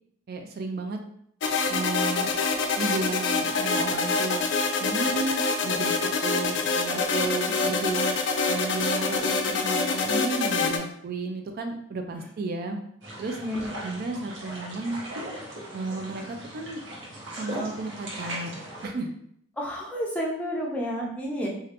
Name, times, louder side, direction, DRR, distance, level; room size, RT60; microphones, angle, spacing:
voice 1, 0.3-1.0 1.7-2.3 2.8-4.5 4.8-5.9 6.2-8.2 8.5-12.8 13.2-13.4 13.8-15.0 15.7-16.8 17.3-19.1, right 3 dB, 50° right, 4 dB, 0.3 m, -33 dB
sound 1, 1.4-10.8, left 4 dB, 65° left, 0.4 m, -26 dB
sound 2, 13.0-18.9, right 1 dB, 80° right, 0.9 m, -38 dB
voice 2, 13.4-13.7 19.6-21.5, equal, 5° left, -3 dB, 0.5 m, -30 dB
3.1 x 2.4 x 2.8 m, 0.67 s
head